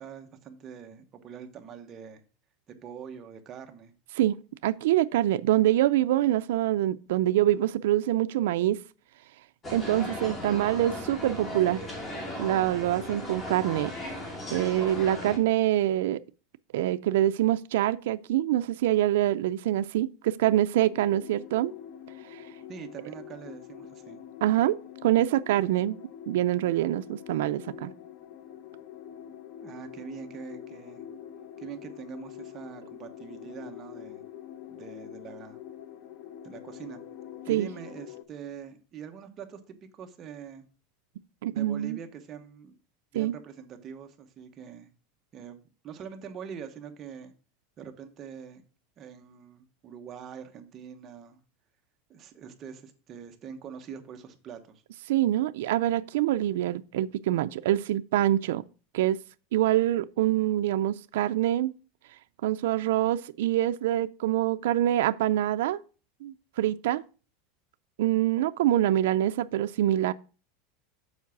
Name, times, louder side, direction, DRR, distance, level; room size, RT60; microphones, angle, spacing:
voice 1, 0.0-2.2 2.7-3.9 22.7-24.2 29.6-31.0 31.6-34.3 34.7-35.6 36.4-37.0 37.5-40.7 41.5-42.7 43.1-44.9 45.3-47.3 47.8-48.6 49.0-51.4 52.1-54.8, right 7 dB, 30° right, 1.0 m, -44 dB
voice 2, 4.6-8.8 9.7-11.8 12.4-13.9 14.5-16.2 16.7-21.7 22.3-22.4 24.4-27.9 37.5-37.7 41.4-42.0 43.1-43.3 55.1-58.6 58.9-59.2 59.5-61.7 62.4-65.8 66.2-67.0 68.0-70.1, right 13 dB, 80° right, 0.3 m, -25 dB
sound 1, 9.6-15.4, left 1 dB, 20° left, 2.1 m, -37 dB
sound 2, 20.8-38.2, left 10 dB, 50° left, 0.8 m, -45 dB
7.3 x 4.6 x 5.8 m
supercardioid pair, 155°, 0 cm